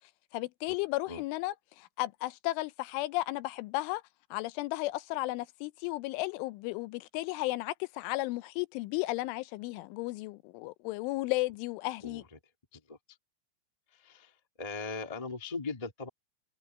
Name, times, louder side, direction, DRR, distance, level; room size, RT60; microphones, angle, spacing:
voice 1, 0.3-4.0 4.3-12.2, left 19 dB, 90° left, 3.2 m, -34 dB
voice 2, 13.9-14.3 14.6-16.1, left 4 dB, 25° left, 0.7 m, -39 dB
omnidirectional pair, 5.4 m